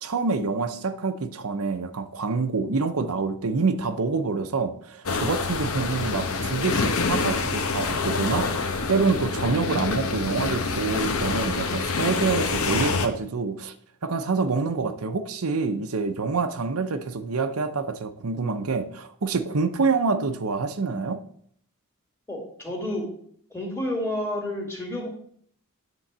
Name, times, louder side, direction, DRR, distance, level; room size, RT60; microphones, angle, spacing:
voice 1, 0.0-13.7 14.0-21.2, right 4 dB, 85° right, 8 dB, 0.7 m, -26 dB
sound 1, 5.1-13.1, left 4 dB, 80° left, 1.0 m, -26 dB
voice 2, 22.3-23.1 23.5-25.1, left 1 dB, 10° left, -1 dB, 2.2 m, -30 dB
10.0 x 3.9 x 7.3 m, 0.63 s
head